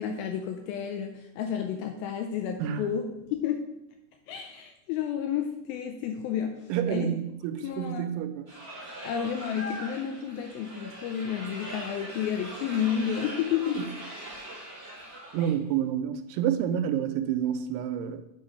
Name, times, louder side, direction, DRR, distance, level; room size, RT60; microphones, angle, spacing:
voice 1, 0.0-3.1 3.3-3.6 4.3-7.1 7.6-8.1 9.0-13.9 15.4-15.5, left 8 dB, 80° left, 5 dB, 2.2 m, -31 dB
voice 2, 6.7-8.5 13.8-13.9 15.3-18.2, right 9 dB, 85° right, 9 dB, 2.5 m, -29 dB
sound 1, 8.5-15.5, right 1 dB, 25° right, 0.9 m, -41 dB
7.6 x 3.8 x 5.5 m, 0.87 s
omnidirectional pair, 4.7 m